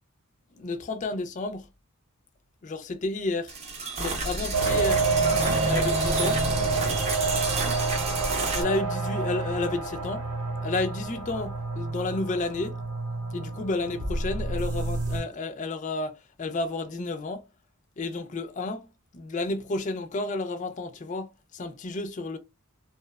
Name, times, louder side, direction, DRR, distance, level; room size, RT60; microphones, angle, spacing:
voice 1, 0.5-1.7 2.6-3.5 4.0-5.0 5.6-6.4 8.4-10.2 10.6-12.8 13.3-17.5 18.0-18.9 19.1-22.4, left 2 dB, 35° left, 0.4 m, -31 dB
sound 1, 3.5-8.6, right 3 dB, 30° right, 0.6 m, -30 dB
sound 2, 4.5-15.2, right 3 dB, 75° right, 0.8 m, -28 dB
2.9 x 2.0 x 2.2 m
head